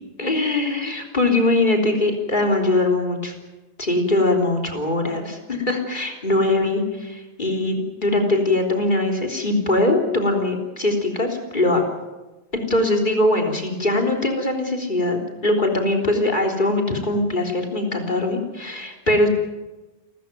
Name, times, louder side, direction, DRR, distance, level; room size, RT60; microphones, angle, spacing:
voice 1, 0.2-3.3 3.8-11.8 12.5-19.3, left 2 dB, 50° left, 2 dB, 3.8 m, -21 dB
29.5 x 13.5 x 9.3 m, 1.1 s
omnidirectional pair, 1.1 m